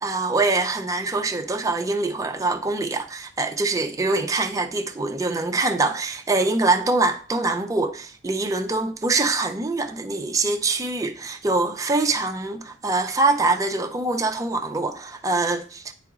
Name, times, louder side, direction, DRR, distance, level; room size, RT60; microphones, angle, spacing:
voice 1, 0.0-15.9, right 3 dB, 15° right, 0.4 m, -24 dB
10.5 x 3.8 x 2.4 m
head